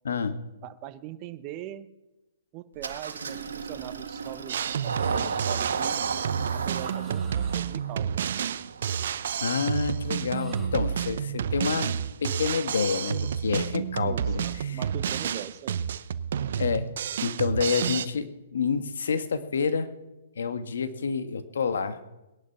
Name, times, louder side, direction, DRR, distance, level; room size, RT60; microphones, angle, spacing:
voice 1, 0.0-0.4 9.4-11.9 12.2-14.8 16.6-16.9 17.2-19.9 20.4-22.0, left 5 dB, 75° left, 10 dB, 1.6 m, -28 dB
voice 2, 0.6-1.9 2.5-6.0 6.5-8.3 14.0-15.8, right 13 dB, 35° right, 11 dB, 1.1 m, -41 dB
Engine starting, 2.8-10.1, right 5 dB, 80° right, 1.8 m, -35 dB
Drum kit, 4.5-18.1, right 8 dB, 65° right, 0.7 m, -30 dB
sound 1, 4.9-5.7 6.7-7.9 10.3-11.0, right 4 dB, 5° right, 6.6 m, -51 dB
19.5 x 11.0 x 5.7 m, 1.0 s
hypercardioid pair, 135°, 0 cm